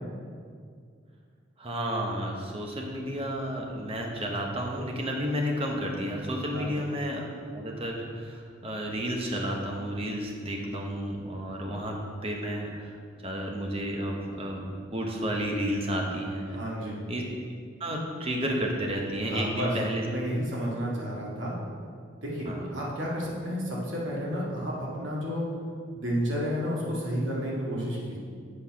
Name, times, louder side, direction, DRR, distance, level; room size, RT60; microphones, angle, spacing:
voice 1, 1.6-7.3 7.5-16.6 17.1-17.2 17.8-20.1 22.4-22.7, equal, 30° right, 0 dB, 1.0 m, -31 dB
voice 2, 16.5-17.0 19.3-19.7 20.1-21.5 22.2-25.5 25.9-28.2, equal, 75° right, -5 dB, 2.0 m, -31 dB
7.5 x 4.4 x 5.8 m, 2.1 s
head